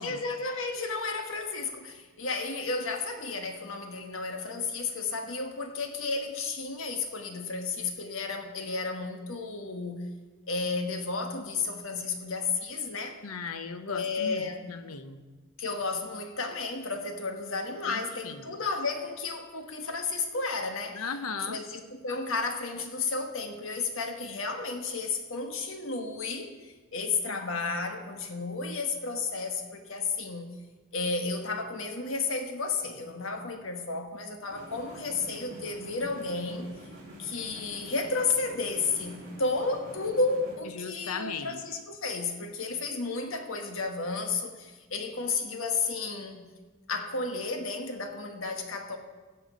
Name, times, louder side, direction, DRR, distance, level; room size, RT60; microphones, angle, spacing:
voice 1, 0.0-10.1 10.5-13.2 13.9-14.8 15.6-21.0 21.5-30.5 30.9-36.7 37.2-46.5 46.9-49.0, left 4 dB, 65° left, 5 dB, 1.2 m, -32 dB
voice 2, 13.2-15.2 17.8-18.6 20.9-21.6 27.2-27.4 40.7-41.6, left 5 dB, 90° left, 10 dB, 0.8 m, -37 dB
sound 1, 34.5-40.5, right 1 dB, 35° right, 3.6 m, -47 dB
16.5 x 6.8 x 5.1 m, 1.3 s
head